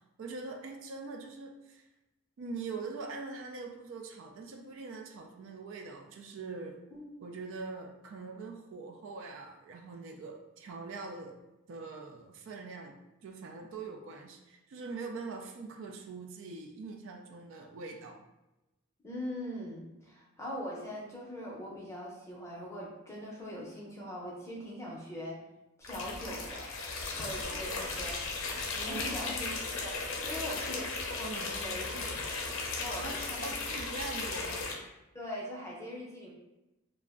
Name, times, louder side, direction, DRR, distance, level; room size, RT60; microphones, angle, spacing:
voice 1, 0.2-1.8 2.4-6.8 7.2-11.4 11.7-13.0 13.2-18.2 27.4-27.8 28.9-29.0 30.2-30.4 31.2-31.5 32.9-33.2 33.4-34.6, right 4 dB, 60° right, 2 dB, 0.3 m, -43 dB
voice 2, 19.0-25.4 25.8-26.7 27.1-28.3 28.7-30.0 30.3-32.3 32.8-33.5 34.3-34.6 35.1-36.3, equal, 15° left, -5 dB, 0.6 m, -41 dB
sound 1, 25.8-34.7, left 3 dB, 65° left, 0.5 m, -36 dB
2.4 x 2.0 x 3.5 m, 0.97 s
head